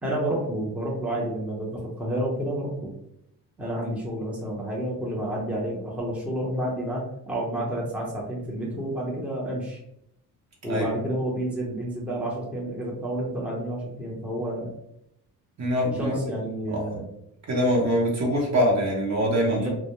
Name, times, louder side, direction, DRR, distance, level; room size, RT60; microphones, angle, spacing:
voice 1, 0.0-2.9 3.6-9.8 10.6-14.7 15.9-17.0 19.5-19.7, right 1 dB, 5° right, -4 dB, 0.7 m, -30 dB
voice 2, 15.6-16.2 16.7-17.0 17.5-19.6, equal, 45° right, -2 dB, 0.9 m, -23 dB
2.2 x 2.0 x 2.9 m, 0.76 s
cardioid pair, 90°, 37 cm